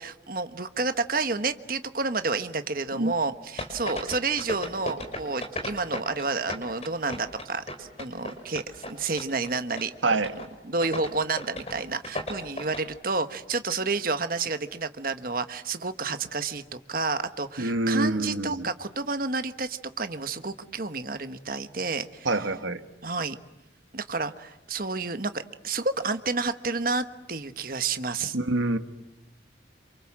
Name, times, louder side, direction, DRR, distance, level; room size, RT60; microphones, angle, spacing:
voice 1, 0.0-9.9 10.3-22.3 23.0-23.4 23.9-28.4, right 3 dB, 50° right, 10 dB, 1.4 m, -30 dB
sound 1, 3.6-6.2 6.5-8.9 9.2-9.5 9.8-9.9 10.1-10.5 10.8-11.1 11.4-11.7 12.0-12.8, left 1 dB, 35° left, 5.3 m, -34 dB
voice 2, 10.0-10.3 17.6-18.7 22.3-22.8 28.3-28.8, right 2 dB, 90° right, 9 dB, 1.7 m, -26 dB
28.0 x 27.5 x 7.6 m, 0.97 s
head